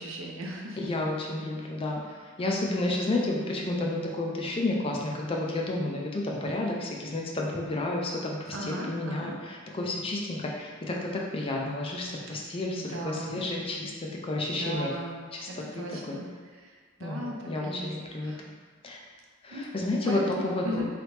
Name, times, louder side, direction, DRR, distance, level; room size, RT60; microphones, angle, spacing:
voice 1, 0.0-0.8 8.5-9.3 12.7-13.4 14.5-15.2 15.5-16.3 16.5-17.9 18.2-18.4 19.5-19.7 20.0-20.9, equal, 70° right, -1 dB, 0.7 m, -37 dB
voice 2, 0.8-2.0 2.4-15.0 15.3-16.2 17.0-18.3 18.8-19.0 19.4-20.8, left 2 dB, 25° left, -1 dB, 0.4 m, -31 dB
3.9 x 3.3 x 3.1 m, 1.5 s
head